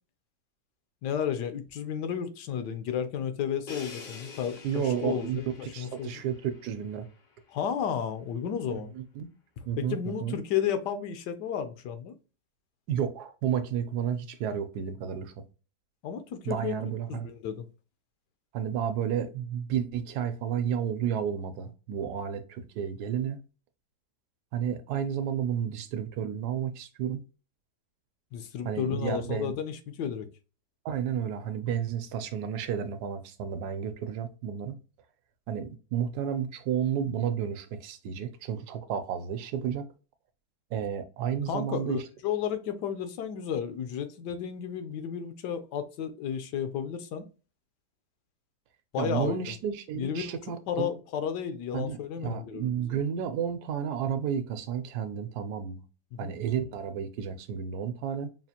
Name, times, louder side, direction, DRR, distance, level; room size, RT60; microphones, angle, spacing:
voice 1, 1.0-6.1 7.5-8.9 9.8-12.1 16.0-17.7 28.3-30.3 41.5-47.3 48.9-49.4 49.9-50.2 50.7-53.0 56.1-56.3, left 8 dB, 90° left, 1.3 m, -33 dB
Crash cymbal, 3.7-7.5, left 4 dB, 65° left, 0.4 m, -47 dB
voice 2, 4.6-7.1 8.7-9.3 9.7-10.4 12.9-15.3 16.5-17.3 18.5-23.4 24.5-27.2 28.6-29.5 30.8-34.8 35.5-39.9 40.7-42.0 49.0-50.9 51.7-55.8 56.2-58.3, right 8 dB, 75° right, 1.1 m, -32 dB
5.7 x 2.4 x 2.7 m
omnidirectional pair, 1.8 m